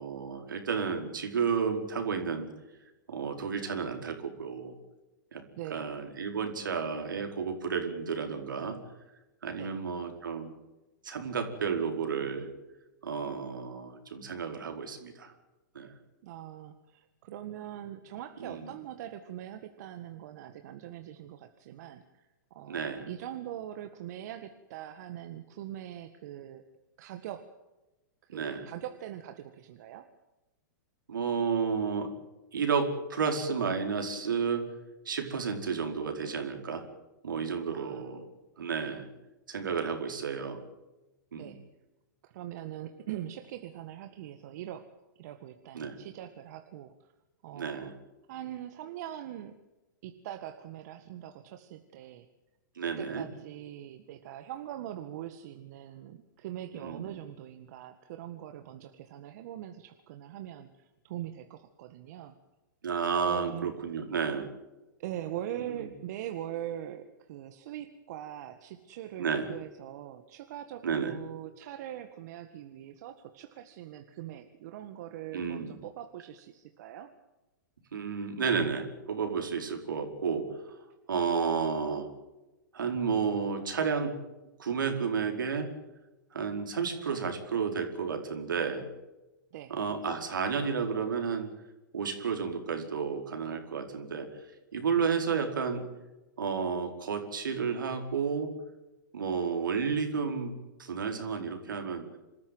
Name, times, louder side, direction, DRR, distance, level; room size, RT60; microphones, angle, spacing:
voice 1, 0.0-2.5 3.1-4.7 5.3-5.4 5.7-8.8 9.4-10.5 11.0-12.5 13.0-15.3 15.7-15.9 18.4-18.7 22.7-23.1 28.3-28.6 31.1-32.1 32.5-34.6 35.0-36.9 37.2-38.2 38.6-39.1 39.5-40.6 41.3-41.6 45.7-46.0 47.5-47.9 52.8-53.2 56.7-57.1 62.8-64.5 65.7-65.8 69.2-69.5 70.8-71.1 75.3-75.7 77.9-82.1 82.7-84.2 84.6-85.7 86.3-88.8 89.7-91.5 91.9-94.3 94.7-95.8 96.4-98.5 99.1-102.0, right 6 dB, 80° right, 5 dB, 4.7 m, -32 dB
voice 2, 5.6-5.9 9.6-9.7 16.2-26.7 27.0-27.5 28.2-30.1 37.7-38.0 38.8-39.0 41.4-41.6 42.2-44.9 45.2-46.9 47.4-47.9 48.3-49.6 50.0-52.3 52.8-62.4 63.2-63.7 65.0-77.1 89.5-89.7 95.1-95.2, right 12 dB, 55° right, 8 dB, 1.8 m, -42 dB
26.5 x 14.0 x 9.4 m, 1.0 s
hypercardioid pair, 115°, 11 cm